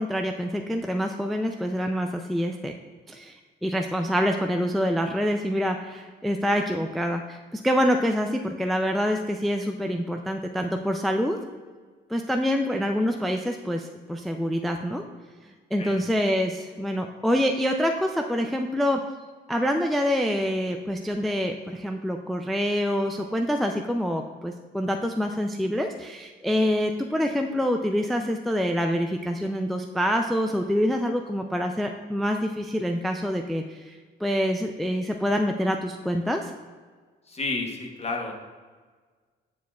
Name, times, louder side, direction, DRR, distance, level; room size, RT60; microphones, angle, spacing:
voice 1, 0.0-2.7 3.1-3.3 3.6-11.4 12.1-15.0 15.7-19.0 19.5-36.5, equal, ahead, 4 dB, 0.3 m, -26 dB
voice 2, 37.3-38.3, left 3 dB, 30° left, 2 dB, 1.0 m, -31 dB
9.3 x 4.6 x 2.3 m, 1.5 s
cardioid pair, 90°, 20 cm